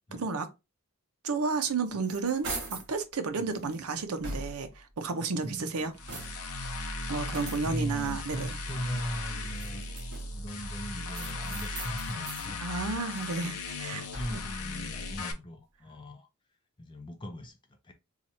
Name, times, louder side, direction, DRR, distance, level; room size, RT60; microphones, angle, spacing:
voice 1, 0.1-0.5 1.2-5.9 7.1-8.6 12.6-14.4, right 4 dB, 85° right, 0.6 m, -32 dB
sound 1, 1.6-3.0 3.5-4.8 5.4-6.6 7.3-8.5 9.4-10.5 11.1-12.5 12.9-14.6, right 2 dB, 60° right, 1.0 m, -42 dB
voice 2, 3.4-3.8 5.4-6.2 7.3-12.6 13.9-16.3 16.8-17.9, equal, 20° left, 0.4 m, -40 dB
sound 2, 6.0-15.3, left 2 dB, 90° left, 0.7 m, -37 dB
2.9 x 2.4 x 4.1 m
head